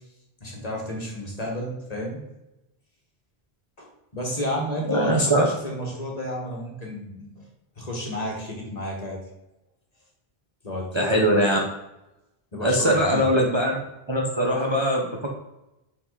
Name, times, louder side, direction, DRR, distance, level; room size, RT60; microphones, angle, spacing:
voice 1, 0.4-2.2 3.8-7.4 7.8-9.2 10.6-11.3 12.5-13.2, equal, 35° left, -2 dB, 1.7 m, -31 dB
voice 2, 4.8-5.5 10.9-11.6 12.6-13.8 14.1-15.3, equal, 30° right, -1 dB, 0.8 m, -21 dB
5.6 x 5.4 x 4.0 m, 0.94 s
omnidirectional pair, 1.1 m